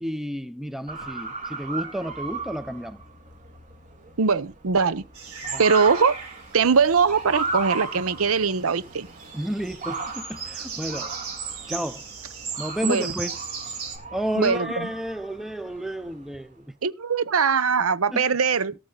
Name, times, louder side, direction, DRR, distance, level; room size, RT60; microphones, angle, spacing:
voice 1, 0.0-3.0 5.5-5.6 9.3-11.2 11.7-12.1 12.6-13.4 14.1-16.7 18.1-18.2, equal, ahead, 0.6 m, -31 dB
Motor vehicle (road) / Siren, 0.9-16.4, right 3 dB, 35° right, 2.3 m, -36 dB
voice 2, 4.2-5.0 5.6-6.1 6.5-9.1 12.8-13.1 14.4-14.9 16.8-18.7, right 5 dB, 70° right, 0.7 m, -21 dB
sound 1, 5.1-14.0, right 6 dB, 90° right, 4.2 m, -37 dB
18.0 x 6.4 x 3.8 m
head